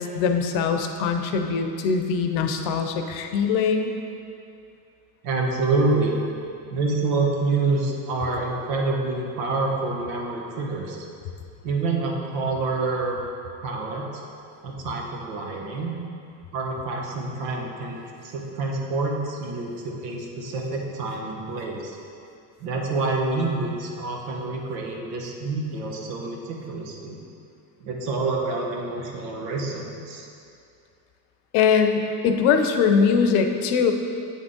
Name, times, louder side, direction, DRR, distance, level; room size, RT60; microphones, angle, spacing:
voice 1, 0.0-3.9 31.5-33.9, left 6 dB, 70° left, 5 dB, 0.7 m, -22 dB
voice 2, 5.2-6.2 6.7-11.1 11.6-13.2 13.6-14.1 14.6-15.9 16.5-22.0 22.6-27.2 27.8-30.3, right 3 dB, 85° right, 0 dB, 1.1 m, -27 dB
8.4 x 3.7 x 3.8 m, 2.5 s
supercardioid pair, 90°, 49 cm